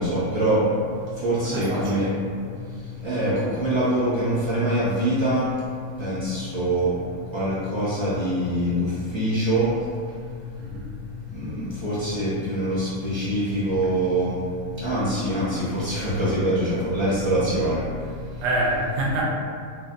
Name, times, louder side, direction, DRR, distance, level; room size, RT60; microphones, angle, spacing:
voice 1, 0.0-2.1 2.4-18.4, right 1 dB, 30° right, -11 dB, 0.5 m, -25 dB
voice 2, 1.4-2.1 10.6-10.9 18.4-19.2, right 1 dB, 65° right, -3 dB, 0.7 m, -26 dB
2.5 x 2.2 x 2.5 m, 2.2 s
omnidirectional pair, 1.5 m